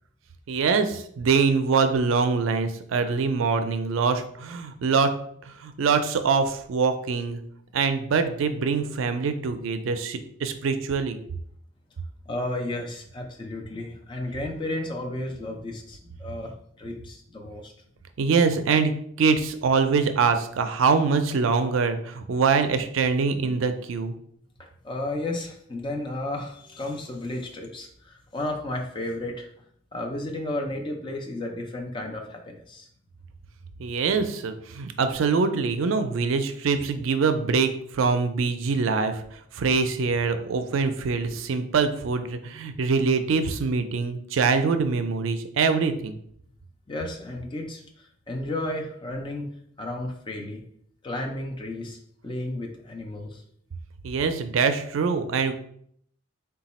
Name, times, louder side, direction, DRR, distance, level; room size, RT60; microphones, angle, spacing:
voice 1, 0.5-5.1 5.4-7.4 7.7-11.2 18.2-18.9 19.2-24.1 33.8-46.2 54.0-55.5, right 5 dB, 70° right, 8 dB, 0.4 m, -24 dB
voice 2, 12.3-16.5 16.8-17.7 24.8-29.5 29.9-32.9 46.9-50.6 51.0-52.0 52.2-53.4, left 1 dB, 25° left, 1 dB, 0.5 m, -33 dB
4.0 x 2.2 x 4.1 m, 0.66 s
head